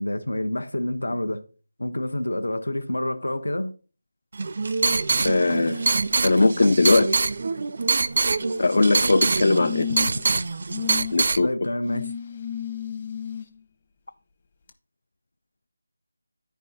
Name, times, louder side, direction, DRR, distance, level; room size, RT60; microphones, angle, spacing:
voice 1, 0.0-1.4 1.8-3.7 11.4-12.1, left 1 dB, 85° left, 0.9 m, -28 dB
sound 1, 4.3-11.4, right 3 dB, 45° right, 0.4 m, -24 dB
voice 2, 5.2-5.9 6.2-7.1 8.6-9.9 11.1-11.5, left 2 dB, 55° left, 0.4 m, -19 dB
sound 2, 8.3-8.9 9.6-10.3 10.7-11.1 11.8-13.4 14.7-14.8, left 9 dB, 30° left, 0.8 m, -33 dB
10.0 x 4.6 x 4.1 m
figure-of-eight pair, 170°, 0 cm